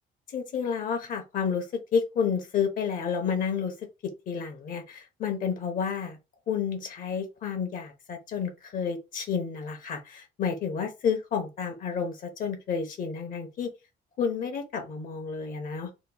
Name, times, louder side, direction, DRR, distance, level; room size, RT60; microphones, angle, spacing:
voice 1, 0.3-3.7 4.0-6.2 6.5-13.7 14.2-15.9, left 6 dB, 55° left, 0.8 m, -30 dB
3.0 x 2.1 x 3.7 m
cardioid pair, 110°, 17 cm